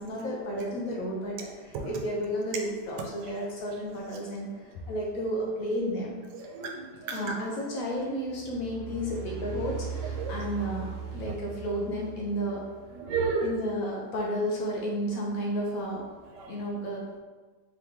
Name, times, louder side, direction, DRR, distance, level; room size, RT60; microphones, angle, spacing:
voice 1, 0.0-4.5 4.9-6.2 7.1-12.6 13.4-16.0 16.5-17.1, equal, 60° left, -3 dB, 1.1 m, -32 dB
voice 2, 6.5-7.3 10.2-10.5 11.2-11.3 13.0-13.5 16.4-16.5, right 4 dB, 85° right, 2 dB, 1.3 m, -31 dB
sound 1, 8.2-12.9, right 6 dB, 60° right, 0.9 m, -39 dB
3.7 x 3.1 x 3.5 m, 1.3 s
omnidirectional pair, 1.8 m